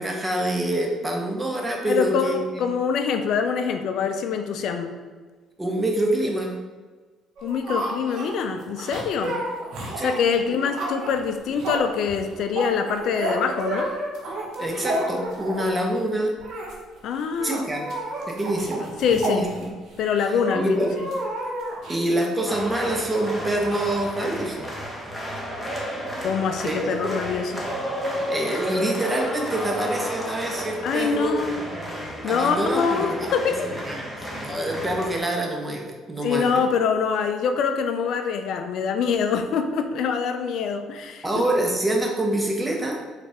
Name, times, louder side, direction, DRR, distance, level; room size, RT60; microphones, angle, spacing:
voice 1, 0.0-2.6 5.6-6.5 10.0-10.2 14.6-16.3 17.4-17.9 18.3-19.5 20.2-20.9 21.9-24.7 26.6-27.1 28.1-31.7 32.2-36.6 41.2-43.0, right 1 dB, 20° right, 1 dB, 0.8 m, -26 dB
voice 2, 1.8-4.9 7.4-9.4 10.0-13.9 17.0-17.7 19.0-19.4 20.0-21.1 26.2-27.6 30.8-31.6 32.2-33.7 36.2-41.4, left 6 dB, 70° left, 7 dB, 0.3 m, -25 dB
sound 1, 7.4-15.8 16.4-16.7 17.0-17.1 17.3-20.0 20.4-22.0, right 1 dB, 70° right, 0.8 m, -31 dB
sound 2, 22.5-35.2, equal, 5° left, 1.0 m, -32 dB
3.9 x 2.4 x 3.4 m, 1.4 s
supercardioid pair, 70°, 0 cm